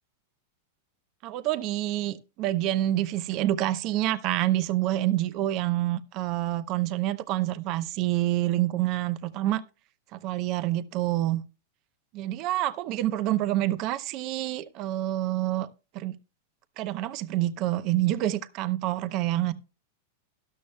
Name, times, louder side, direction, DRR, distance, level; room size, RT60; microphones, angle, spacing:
voice 1, 1.2-9.6 10.1-11.4 12.1-15.7 15.9-16.1 16.8-19.5, right 14 dB, 45° right, 0.7 m, -27 dB
13.0 x 12.0 x 2.2 m
supercardioid pair, 135°, 0 cm